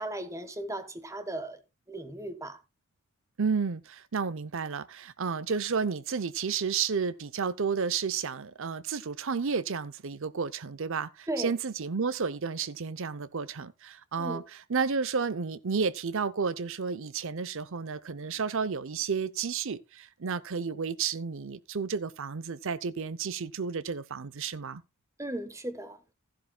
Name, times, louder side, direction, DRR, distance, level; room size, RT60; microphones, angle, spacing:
voice 1, 0.0-1.6 1.9-2.6 11.3-11.5 14.2-14.4 25.2-26.0, right 1 dB, 15° right, 1.2 m, -36 dB
voice 2, 3.4-14.4 14.7-24.8, right 5 dB, 65° right, 0.7 m, -31 dB
13.0 x 11.5 x 2.3 m
head